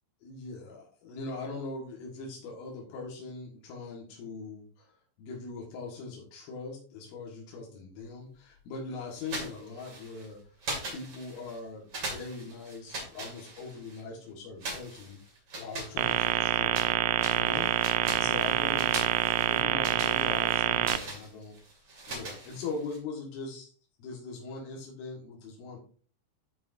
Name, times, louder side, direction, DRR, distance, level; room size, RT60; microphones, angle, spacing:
voice 1, 0.2-4.9 5.2-10.4 10.9-15.2 15.5-17.0 17.3-17.7 18.1-21.6 22.1-23.7 24.0-25.8, left 3 dB, 80° left, -3 dB, 4.2 m, -41 dB
sound 1, 9.2-10.3 10.6-11.6 11.9-14.0 14.6-16.9 17.2-23.0, right 2 dB, 40° right, 2.2 m, -40 dB
sound 2, 16.0-21.0, right 13 dB, 85° right, 2.9 m, -27 dB
12.5 x 5.0 x 2.6 m, 0.42 s
omnidirectional pair, 5.8 m